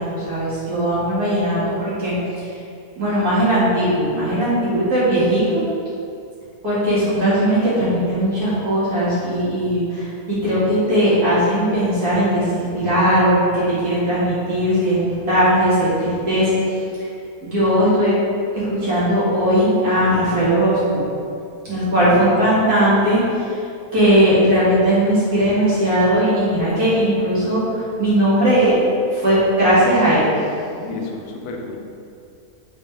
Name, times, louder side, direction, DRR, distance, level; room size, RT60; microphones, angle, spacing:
voice 1, 0.0-2.6 3.0-5.6 6.6-16.5 17.4-18.1 18.6-21.1 21.7-23.6 23.9-28.7 29.1-30.3, equal, 85° right, -10 dB, 2.1 m, -18 dB
voice 2, 21.7-22.4 30.7-31.8, left 3 dB, 85° left, 1 dB, 1.1 m, -31 dB
4.0 x 3.6 x 3.3 m, 2.5 s
omnidirectional pair, 1.6 m